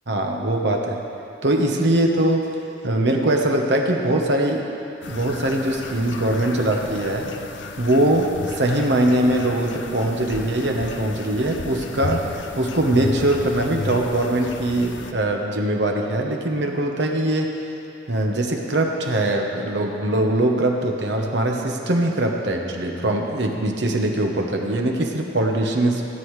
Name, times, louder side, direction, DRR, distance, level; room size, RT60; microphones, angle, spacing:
voice 1, 0.1-1.0 1.4-2.5 2.8-4.7 5.1-7.3 7.8-17.6 18.1-26.0, right 1 dB, 70° right, 2 dB, 1.0 m, -22 dB
sound 1, 5.0-15.1, left 3 dB, 80° left, 0.5 m, -34 dB
17.0 x 8.5 x 3.2 m, 2.9 s
head